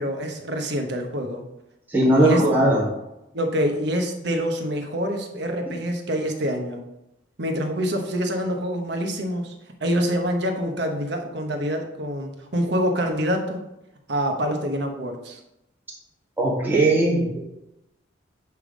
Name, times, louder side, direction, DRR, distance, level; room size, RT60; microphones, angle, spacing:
voice 1, 0.0-1.4 2.2-2.4 3.3-6.8 7.4-9.5 9.8-13.6 14.1-15.4, equal, 60° right, 4 dB, 1.1 m, -26 dB
voice 2, 1.9-2.8 5.7-5.8 16.4-17.4, right 1 dB, 10° right, -4 dB, 1.6 m, -19 dB
8.1 x 3.5 x 5.0 m, 0.87 s
head